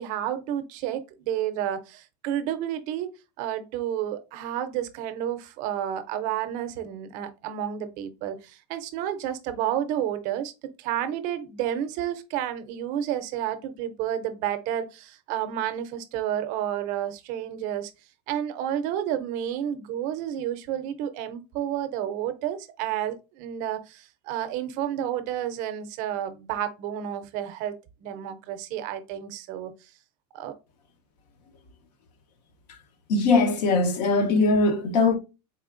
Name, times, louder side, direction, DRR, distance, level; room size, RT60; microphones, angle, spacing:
voice 1, 0.0-10.5 10.8-17.9 18.3-27.7 28.0-29.7 30.3-30.6, right 10 dB, 40° right, 0.5 m, -30 dB
voice 2, 33.1-35.2, left 3 dB, 85° left, 0.9 m, -21 dB
4.2 x 3.3 x 2.4 m
supercardioid pair, 170°, 21 cm